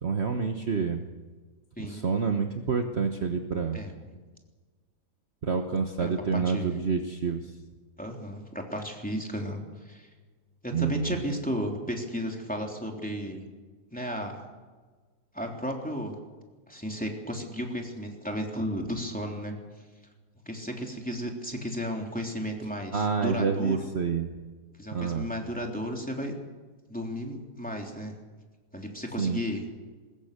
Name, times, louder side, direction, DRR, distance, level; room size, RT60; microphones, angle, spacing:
voice 1, 0.0-1.1 1.8-3.8 5.4-7.5 10.7-11.2 22.9-24.3 24.9-25.3 29.2-29.4, right 5 dB, 40° right, 4 dB, 1.4 m, -28 dB
voice 2, 3.7-4.2 6.0-6.7 8.0-9.6 9.8-10.1 10.6-13.4 13.9-14.4 15.3-16.1 16.7-19.5 20.4-23.8 24.8-26.3 26.9-28.1 28.7-29.6, equal, 5° left, 1 dB, 3.3 m, -34 dB
22.5 x 20.5 x 6.8 m, 1.4 s
omnidirectional pair, 1.8 m